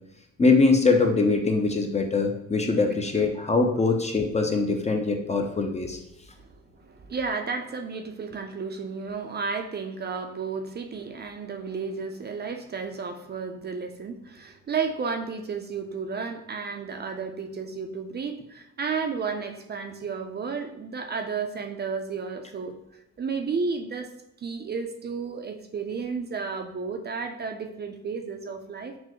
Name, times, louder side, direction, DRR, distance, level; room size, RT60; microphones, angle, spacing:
voice 1, 0.4-6.0, left 3 dB, 20° left, 4 dB, 0.5 m, -22 dB
voice 2, 6.4-22.7 23.2-24.1 24.4-28.9, right 5 dB, 35° right, 5 dB, 0.4 m, -32 dB
6.0 x 2.1 x 2.9 m, 0.84 s
cardioid pair, 90°, 30 cm